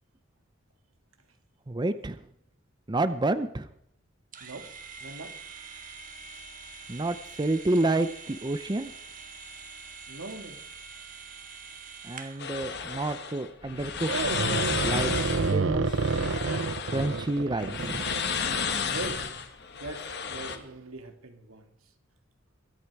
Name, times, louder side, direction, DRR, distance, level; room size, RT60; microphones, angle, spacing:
voice 1, 1.7-2.2 2.9-3.7 6.9-8.9 12.0-14.4 14.8-16.0 16.9-18.0, right 2 dB, 20° right, 12 dB, 0.6 m, -29 dB
sound 1, 4.3-12.5, right 5 dB, 40° right, 1.6 m, -45 dB
voice 2, 4.4-4.7 5.0-5.4 10.1-10.6 18.9-19.3 19.7-21.7, right 2 dB, 90° right, 6 dB, 2.0 m, -41 dB
sound 2, 12.4-20.6, left 6 dB, 55° left, 1.6 m, -33 dB
sound 3, 14.1-19.1 19.9-20.0 20.3-20.6, right 4 dB, 65° right, 0.7 m, -29 dB
22.5 x 8.5 x 4.7 m, 0.75 s
head